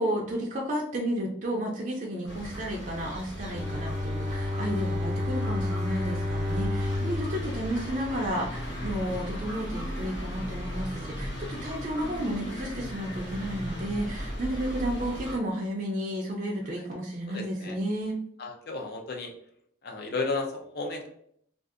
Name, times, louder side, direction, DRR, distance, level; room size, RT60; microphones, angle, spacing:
voice 1, 0.0-18.2, right 1 dB, 40° right, -2 dB, 0.4 m, -32 dB
sound 1, 2.3-15.4, equal, 70° left, 1.3 m, -38 dB
Bowed string instrument, 3.5-8.7, left 2 dB, 5° left, 0.7 m, -31 dB
sound 2, 7.9-15.4, equal, 90° left, 1.1 m, -42 dB
voice 2, 17.3-17.8 18.4-19.3 19.8-21.1, left 3 dB, 50° left, 2 dB, 0.5 m, -33 dB
2.6 x 2.4 x 2.4 m, 0.67 s
head